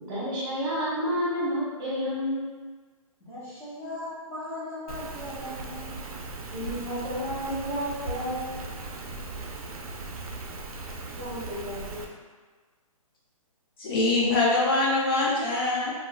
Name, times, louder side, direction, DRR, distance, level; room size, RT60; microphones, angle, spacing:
voice 1, 0.1-2.5 6.5-8.5 11.2-12.0, equal, 40° right, -8 dB, 1.1 m, -30 dB
voice 2, 3.2-6.2, left 1 dB, 10° left, -12 dB, 0.8 m, -39 dB
Rain, 4.9-12.0, right 3 dB, 80° right, 0.5 m, -38 dB
voice 3, 13.8-15.9, left 2 dB, 40° left, -5 dB, 0.4 m, -23 dB
3.0 x 2.3 x 2.2 m, 1.4 s
hypercardioid pair, 150°, 18 cm